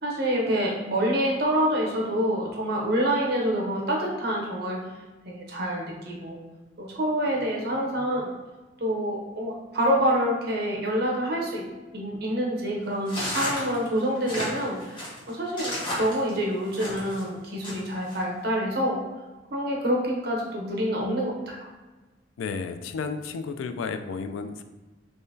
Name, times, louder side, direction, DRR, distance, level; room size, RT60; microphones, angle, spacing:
voice 1, 0.0-4.8 5.2-6.4 6.8-8.3 8.8-11.7 11.9-19.0 19.5-21.7, equal, 55° right, -1 dB, 0.8 m, -27 dB
sound 1, 13.1-17.2 17.6-18.2, equal, 25° left, 1.0 m, -32 dB
voice 2, 22.4-24.6, left 5 dB, 90° left, 9 dB, 0.3 m, -32 dB
3.7 x 3.1 x 2.7 m, 1.2 s
head